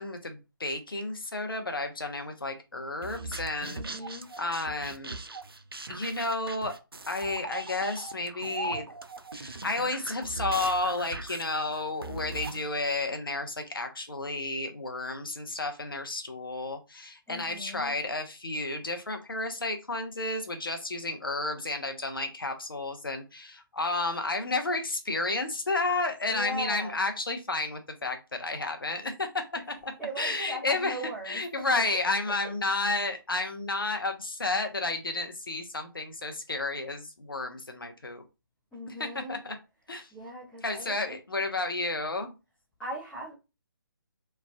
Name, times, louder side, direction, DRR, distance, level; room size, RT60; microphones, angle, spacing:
voice 1, 0.0-4.1 4.4-5.1 5.9-6.7 7.1-8.9 9.3-29.4 29.8-31.0 31.3-38.2 38.9-39.5 39.9-40.1 40.6-42.3, left 2 dB, 70° left, 0.7 m, -32 dB
sound 1, 3.0-12.6, right 2 dB, 85° right, 0.4 m, -39 dB
voice 2, 3.8-4.3 17.3-18.0 26.3-27.0 30.0-31.4 38.7-39.4 40.1-41.2 42.8-43.3, right 1 dB, 5° left, 0.7 m, -39 dB
3.2 x 2.3 x 2.2 m
figure-of-eight pair, 145°, 12 cm